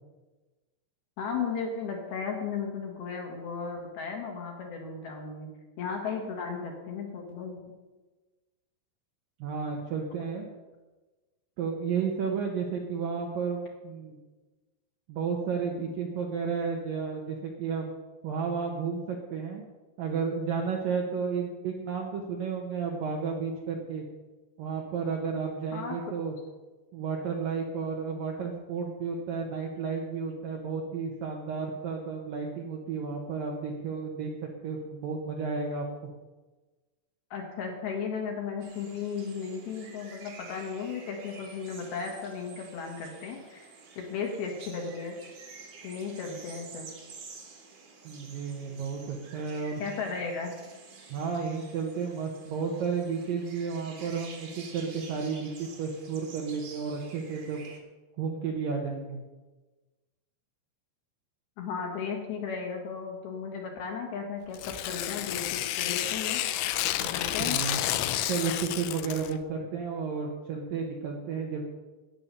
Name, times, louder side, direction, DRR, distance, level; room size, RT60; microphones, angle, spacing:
voice 1, 1.2-5.5 5.8-7.6 25.7-26.0 37.3-45.1 45.8-46.9 49.8-50.5 61.6-66.4 67.1-67.6, left 5 dB, 60° left, 1 dB, 3.0 m, -35 dB
voice 2, 9.4-10.5 11.6-14.2 15.1-17.9 18.2-19.6 20.0-24.0 24.6-26.3 26.9-34.3 34.6-35.9 48.0-49.8 51.1-57.7 58.2-59.2 67.0-67.1 67.4-67.8 68.3-71.6, right 5 dB, 90° right, 0 dB, 1.9 m, -32 dB
sound 1, 38.6-57.8, right 4 dB, 55° right, 1.8 m, -49 dB
Tearing, 64.5-69.4, left 14 dB, 80° left, 2.7 m, -30 dB
12.5 x 9.2 x 6.8 m, 1.2 s
omnidirectional pair, 5.9 m